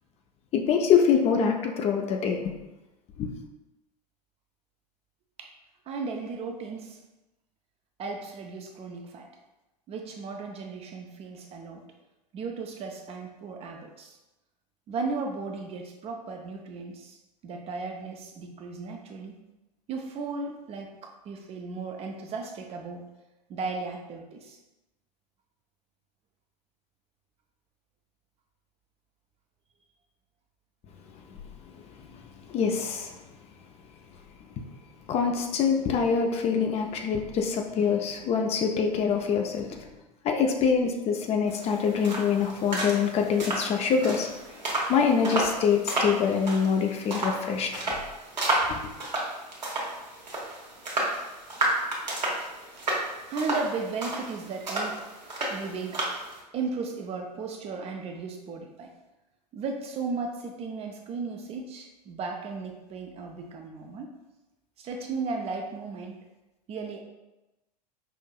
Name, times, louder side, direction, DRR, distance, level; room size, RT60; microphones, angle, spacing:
voice 1, 0.5-2.4 3.2-3.3 32.5-33.2 34.6-34.7 35.1-39.8 40.2-44.3 44.9-47.7 48.7-48.8, left 6 dB, 30° left, 3 dB, 0.4 m, -25 dB
voice 2, 5.9-7.0 8.0-9.3 9.9-11.8 12.3-14.2 14.9-17.2 17.4-19.3 19.9-23.0 23.5-24.6 53.3-55.0 55.5-56.0 56.5-58.9 59.5-64.1 64.8-66.2 66.7-67.0, right 4 dB, 30° right, 2 dB, 0.5 m, -35 dB
sound 1, 41.5-56.4, right 1 dB, 85° right, 1.1 m, -32 dB
5.5 x 2.6 x 2.2 m, 1.0 s
figure-of-eight pair, 90°, 21 cm